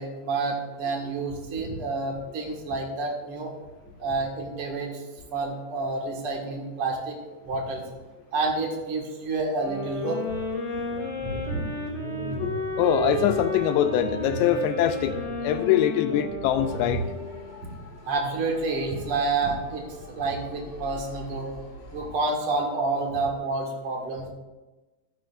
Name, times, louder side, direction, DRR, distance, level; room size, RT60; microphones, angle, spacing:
voice 1, 0.0-3.5 4.0-5.0 5.3-7.2 7.4-7.8 8.3-10.2 11.2-11.6 18.1-21.5 21.9-24.3, right 3 dB, 60° right, 0 dB, 1.5 m, -29 dB
sound 1, 9.6-17.5, left 1 dB, 20° left, 3.4 m, -32 dB
sound 2, 10.7-17.1, right 2 dB, 85° right, 6.4 m, -37 dB
voice 2, 12.8-15.1 15.4-17.0, left 10 dB, 85° left, 8 dB, 2.6 m, -23 dB
Motor vehicle (road) / Siren, 16.6-22.3, left 3 dB, 50° left, 2.1 m, -45 dB
15.0 x 12.0 x 2.5 m, 1.1 s
omnidirectional pair, 5.3 m